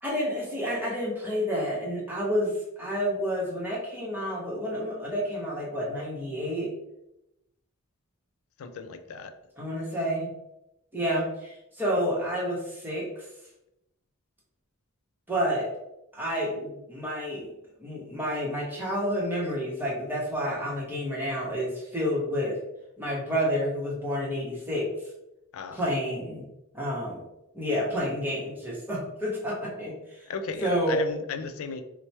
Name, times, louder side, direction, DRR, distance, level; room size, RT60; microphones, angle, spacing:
voice 1, 0.0-6.7 9.6-10.3 10.9-13.3 15.3-15.7 16.1-17.5 17.8-22.6 23.0-24.9 25.7-26.5 26.7-27.2 27.5-30.3 30.6-31.0, equal, 10° right, -4 dB, 0.9 m, -29 dB
voice 2, 8.6-9.3 25.5-25.9 30.3-31.8, left 5 dB, 70° left, 9 dB, 0.4 m, -35 dB
3.0 x 2.1 x 4.1 m, 0.86 s
head